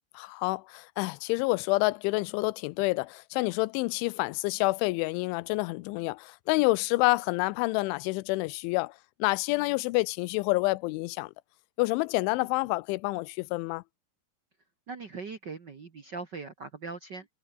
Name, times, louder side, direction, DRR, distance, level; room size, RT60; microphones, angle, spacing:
voice 1, 0.1-8.9 9.2-11.3 11.8-13.8, left 23 dB, 85° left, 3.1 m, -28 dB
voice 2, 14.9-17.3, right 4 dB, 80° right, 0.9 m, -40 dB
omnidirectional pair, 5.4 m